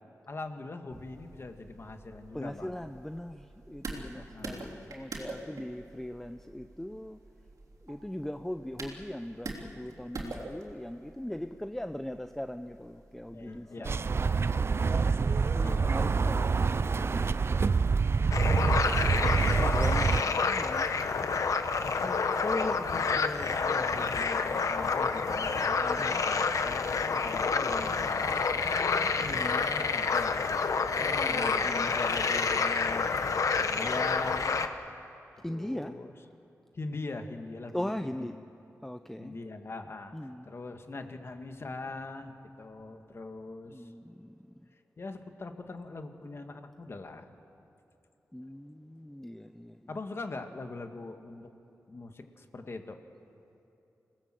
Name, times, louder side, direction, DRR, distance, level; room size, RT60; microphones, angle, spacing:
voice 1, 0.3-2.8 4.1-4.8 13.3-14.3 15.6-16.5 22.0-33.1 33.6-34.6 35.3-36.1 36.7-38.3 39.2-43.9 45.0-47.3 49.9-51.5 51.9-53.0, left 3 dB, 45° left, 6 dB, 1.7 m, -41 dB
sound 1, 0.9-13.6, right 2 dB, 70° right, 3.3 m, -46 dB
voice 2, 2.3-7.2 7.8-14.8 15.2-16.7 17.1-17.8 19.0-20.9 26.0-26.2 31.1-31.9 35.4-35.9 37.7-38.4 38.8-39.4 40.1-40.5 43.7-44.7 48.3-50.0, left 1 dB, 5° left, 8 dB, 0.6 m, -40 dB
sound 2, 13.8-20.2, right 5 dB, 45° right, 0.5 m, -26 dB
sound 3, 18.3-34.7, left 4 dB, 70° left, 1.1 m, -28 dB
27.0 x 18.0 x 7.7 m, 3.0 s
wide cardioid pair, 100°, 6 cm